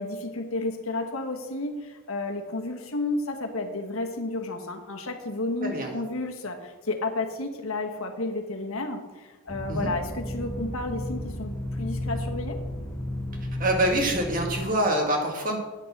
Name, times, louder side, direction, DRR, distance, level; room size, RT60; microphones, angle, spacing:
voice 1, 0.0-12.6, left 2 dB, 75° left, 4 dB, 1.3 m, -32 dB
sound 1, 9.5-14.6, left 1 dB, 10° left, 1.3 m, -33 dB
voice 2, 13.6-15.6, right 1 dB, 40° right, 1 dB, 1.9 m, -25 dB
8.9 x 6.5 x 7.2 m, 1.3 s
head